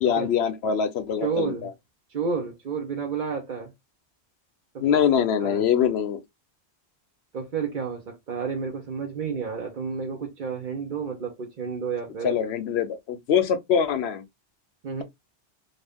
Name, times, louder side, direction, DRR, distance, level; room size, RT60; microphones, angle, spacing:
voice 1, 0.0-1.7 4.8-6.2 12.2-14.2, left 8 dB, 70° left, 0.8 m, -23 dB
voice 2, 1.2-1.7 2.1-3.7 4.7-5.0 5.4-5.7 7.3-12.4 14.8-15.0, right 5 dB, 50° right, 0.8 m, -31 dB
2.6 x 2.6 x 3.4 m
omnidirectional pair, 1.2 m